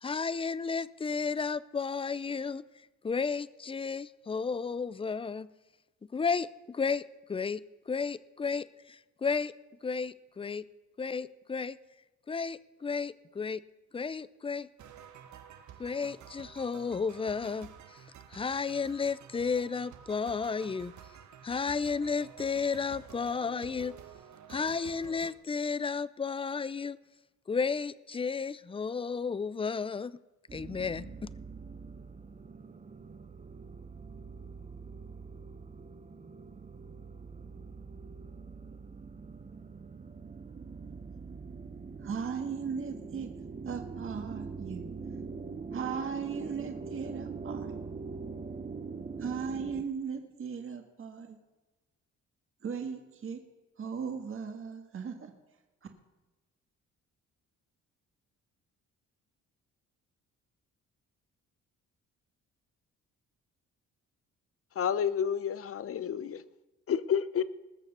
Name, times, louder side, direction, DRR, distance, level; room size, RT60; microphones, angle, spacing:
voice 1, 0.0-2.6 3.0-5.5 6.1-7.0 7.3-9.5 9.8-10.6 11.0-11.8 12.3-13.6 13.9-14.7 15.8-17.7 18.3-20.9 21.4-23.9 24.5-27.0 27.5-30.1 30.5-31.3, left 5 dB, 20° left, 0.5 m, -33 dB
sound 1, 14.8-25.3, right 9 dB, 70° right, 1.2 m, -51 dB
sound 2, 30.5-49.8, right 4 dB, 25° right, 0.8 m, -43 dB
voice 2, 42.0-43.3 43.7-44.9 45.7-47.8 49.2-51.4 52.6-53.4 53.8-55.3, right 6 dB, 45° right, 1.7 m, -37 dB
voice 3, 64.8-66.4 66.9-67.4, left 8 dB, 50° left, 0.7 m, -30 dB
20.0 x 6.9 x 6.8 m
cardioid pair, 90°, 30 cm